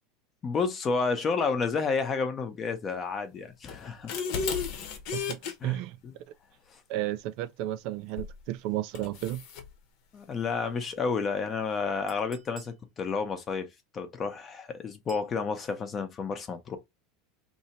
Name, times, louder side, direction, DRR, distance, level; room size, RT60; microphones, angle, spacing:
voice 1, 0.4-4.2 5.6-5.8 6.0-6.1 6.7-6.8 10.1-13.7 13.9-16.8, left 5 dB, 25° left, 0.7 m, -30 dB
sound 1, 3.7-5.5 8.2-8.4 8.9-9.7, left 5 dB, 55° left, 0.9 m, -33 dB
voice 2, 5.1-6.0 6.9-9.4, right 14 dB, 55° right, 0.3 m, -33 dB
Chink clink, 12.1-12.8 15.1-15.3, right 6 dB, 20° right, 0.8 m, -52 dB
2.8 x 2.7 x 4.2 m
supercardioid pair, 155°, 0 cm